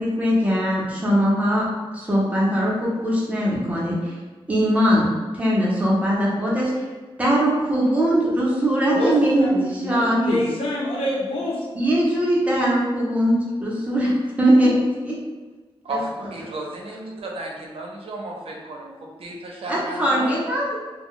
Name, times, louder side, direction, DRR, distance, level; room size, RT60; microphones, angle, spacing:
voice 1, 0.0-1.7 1.9-4.2 4.5-5.1 5.3-6.7 7.2-10.4 11.7-14.7 15.0-15.2 15.9-16.3 19.7-20.8, equal, 15° right, -6 dB, 0.8 m, -21 dB
voice 2, 8.9-11.6, left 1 dB, 75° left, -4 dB, 0.7 m, -26 dB
voice 3, 15.8-18.9 19.2-20.3, right 2 dB, 80° right, -1 dB, 0.6 m, -33 dB
2.2 x 2.2 x 3.7 m, 1.3 s
wide cardioid pair, 130°, 10 cm